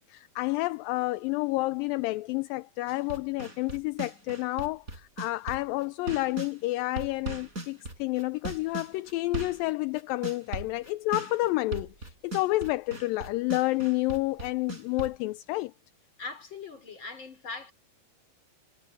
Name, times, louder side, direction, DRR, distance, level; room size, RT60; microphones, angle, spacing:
voice 1, 0.0-15.7, left 20 dB, 80° left, 2.1 m, -30 dB
sound 1, 2.9-6.5 7.0-15.2, right 2 dB, 20° right, 6.1 m, -38 dB
voice 2, 16.2-17.7, left 4 dB, 30° left, 4.7 m, -40 dB
omnidirectional pair, 4.4 m